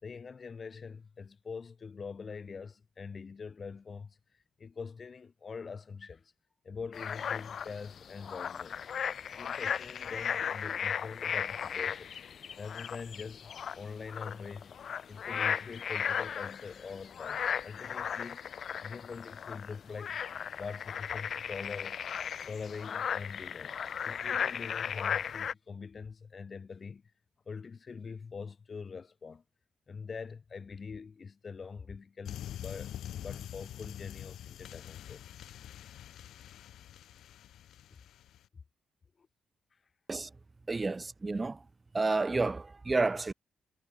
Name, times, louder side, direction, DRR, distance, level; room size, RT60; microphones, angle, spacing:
voice 1, 0.0-4.2 4.6-6.3 6.6-8.9 9.3-12.2 12.6-14.7 15.1-18.4 18.8-20.2 20.5-22.0 22.4-23.7 24.0-27.0 27.5-29.4 29.9-33.0 33.2-35.3 39.2-39.3, left 5 dB, 40° left, 6.4 m, -44 dB
sound 1, 6.9-25.5, left 8 dB, 60° left, 4.1 m, -36 dB
sound 2, 32.3-38.5, left 11 dB, 85° left, 3.7 m, -45 dB
voice 2, 40.7-41.6 41.9-43.3, right 3 dB, 25° right, 2.6 m, -30 dB
cardioid pair, 90°, 0 cm